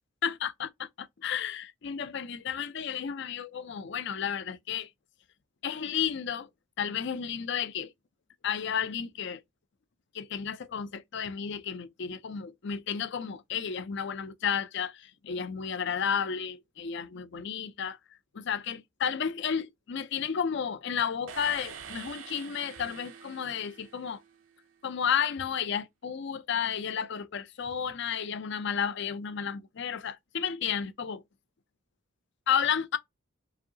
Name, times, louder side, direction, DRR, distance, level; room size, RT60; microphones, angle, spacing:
voice 1, 0.2-4.9 5.6-6.5 6.8-7.9 8.4-9.4 10.1-18.0 18.3-24.2 24.8-31.2 32.5-33.0, left 7 dB, 55° left, 0.5 m, -32 dB
sound 1, 21.3-24.4, right 7 dB, 75° right, 0.7 m, -46 dB
4.8 x 2.7 x 2.8 m
head